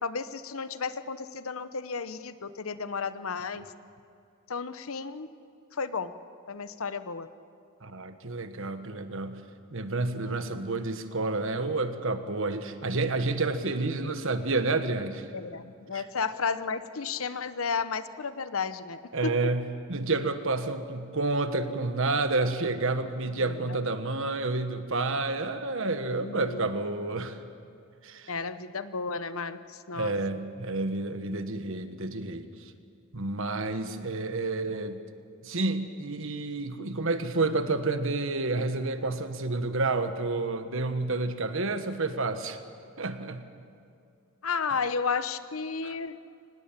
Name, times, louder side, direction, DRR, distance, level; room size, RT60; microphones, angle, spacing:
voice 1, 0.0-3.6 4.5-5.3 5.8-6.1 6.5-7.3 10.2-10.6 15.3-19.3 26.2-26.7 28.3-29.6 29.9-30.1 44.4-46.2, left 5 dB, 70° left, 12 dB, 0.9 m, -33 dB
voice 2, 7.8-9.5 9.7-15.3 15.9-16.1 19.1-27.4 28.0-28.3 29.9-32.5 33.1-35.0 35.4-42.6 43.0-43.4 44.7-44.8 45.8-46.0, right 3 dB, 65° right, 9 dB, 1.4 m, -30 dB
24.5 x 19.5 x 7.5 m, 2.4 s
head